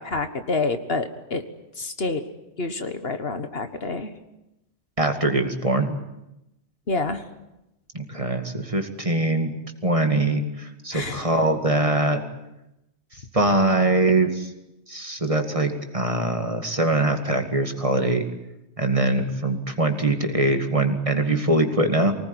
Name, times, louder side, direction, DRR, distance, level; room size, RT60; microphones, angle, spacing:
voice 1, 0.0-1.4 1.8-2.2 2.6-4.1 6.9-7.2 10.9-11.3, left 3 dB, 60° left, 9 dB, 1.7 m, -28 dB
voice 2, 5.0-6.0 7.9-9.6 9.8-12.2 13.3-14.5 14.9-18.2 18.8-22.2, right 2 dB, 30° right, 6 dB, 2.3 m, -22 dB
24.5 x 19.0 x 9.9 m, 0.90 s
omnidirectional pair, 1.2 m